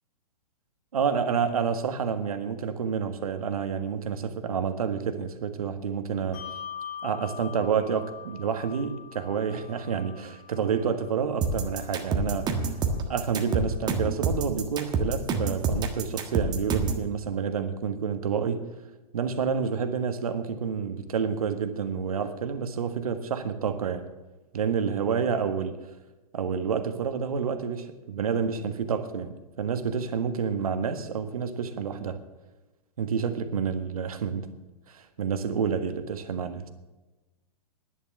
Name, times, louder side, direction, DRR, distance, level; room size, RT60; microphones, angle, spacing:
voice 1, 0.9-6.4 7.0-12.5 13.1-18.6 19.1-24.1 24.5-25.8 26.3-32.2 33.0-34.5 35.2-36.6, right 6 dB, 65° right, 8 dB, 1.6 m, -29 dB
Bell, 6.3-13.2, left 8 dB, 35° left, 1.6 m, -44 dB
sound 1, 11.4-17.0, right 4 dB, 20° right, 1.5 m, -27 dB
11.0 x 10.5 x 7.7 m, 1.1 s
figure-of-eight pair, 120°, 20 cm